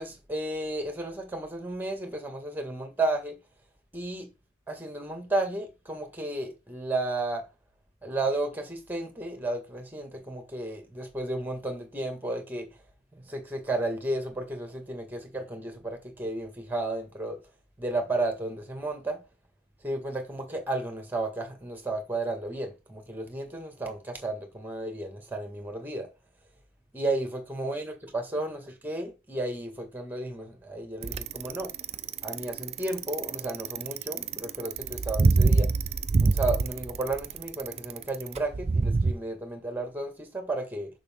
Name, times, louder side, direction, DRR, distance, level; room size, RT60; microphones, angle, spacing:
voice 1, 0.0-3.3 3.9-4.3 4.7-7.4 8.0-12.7 13.3-17.4 17.8-19.2 19.8-26.1 26.9-31.7 32.2-35.7 36.2-40.9, right 2 dB, 10° right, 1.7 m, -33 dB
Bicycle, 31.0-39.1, right 3 dB, 30° right, 0.4 m, -25 dB
6.7 x 6.1 x 3.6 m
head